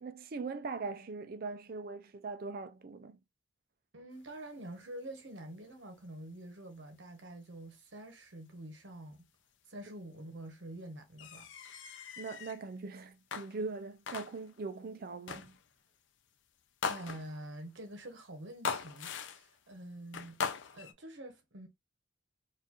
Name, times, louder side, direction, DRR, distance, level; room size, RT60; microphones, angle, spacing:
voice 1, 0.0-3.2 12.2-15.6, right 4 dB, 45° right, 0.4 m, -41 dB
voice 2, 3.9-9.2 9.7-11.5 16.9-20.4 20.7-21.7, right 1 dB, 65° right, 0.9 m, -47 dB
sound 1, 11.2-12.6 13.3-13.8 14.1-14.6 15.3-15.6 16.8-17.5 18.6-19.6 20.1-20.9, left 5 dB, 65° left, 0.5 m, -39 dB
4.3 x 2.5 x 2.9 m
head